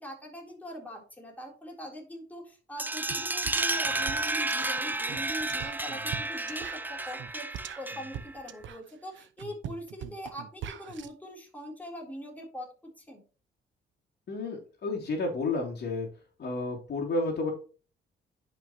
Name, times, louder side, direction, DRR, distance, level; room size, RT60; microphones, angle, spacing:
voice 1, 0.0-13.2, equal, 10° left, -1 dB, 3.8 m, -42 dB
sound 1, 2.8-8.3, right 2 dB, 10° right, 0.5 m, -31 dB
sound 2, 3.1-3.2 3.4-11.1, right 9 dB, 70° right, 0.9 m, -42 dB
voice 2, 14.3-16.1 16.4-17.5, left 2 dB, 55° left, -1 dB, 3.2 m, -31 dB
11.0 x 5.7 x 3.1 m, 0.37 s
cardioid pair, 90°, 20 cm